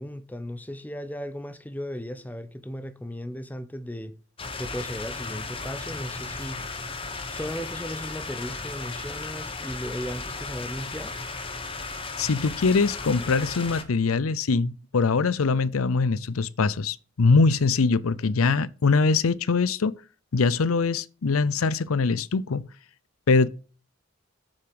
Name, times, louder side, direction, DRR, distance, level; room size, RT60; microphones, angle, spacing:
voice 1, 0.0-4.2 4.6-6.6 7.3-11.2, equal, 10° left, 0.8 m, -36 dB
sound 1, 4.4-13.8, left 3 dB, 25° left, 1.3 m, -35 dB
voice 2, 12.2-19.9 20.3-22.6 23.3-23.5, left 4 dB, 90° left, 0.6 m, -23 dB
8.1 x 7.0 x 7.7 m
head